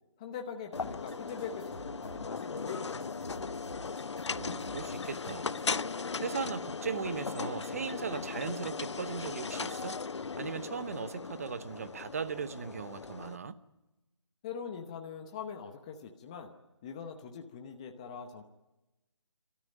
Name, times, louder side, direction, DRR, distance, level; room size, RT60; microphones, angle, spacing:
voice 1, 0.2-3.6 14.4-16.5 16.8-18.4, left 6 dB, 15° left, 0.8 m, -42 dB
sound 1, 0.7-13.4, left 5 dB, 70° left, 0.7 m, -38 dB
sound 2, 0.7-5.7, right 4 dB, 50° right, 3.6 m, -51 dB
voice 2, 4.4-5.6 6.2-10.0 10.4-13.5, right 6 dB, 30° right, 1.0 m, -38 dB
29.5 x 13.5 x 9.1 m
hypercardioid pair, 170°, 16 cm